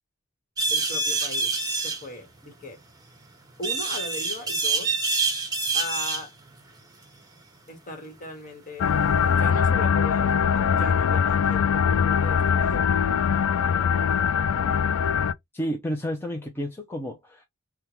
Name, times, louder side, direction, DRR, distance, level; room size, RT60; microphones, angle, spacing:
sound 1, 0.6-2.0 3.6-6.2, right 3 dB, 20° right, 0.9 m, -26 dB
voice 1, 0.7-2.8 3.6-4.9 5.7-6.3 7.7-8.9 9.3-12.9, left 2 dB, 40° left, 1.3 m, -38 dB
sound 2, 8.8-15.3, left 7 dB, 65° left, 0.3 m, -22 dB
voice 2, 15.5-17.4, equal, 10° left, 0.5 m, -31 dB
3.6 x 2.2 x 2.9 m
head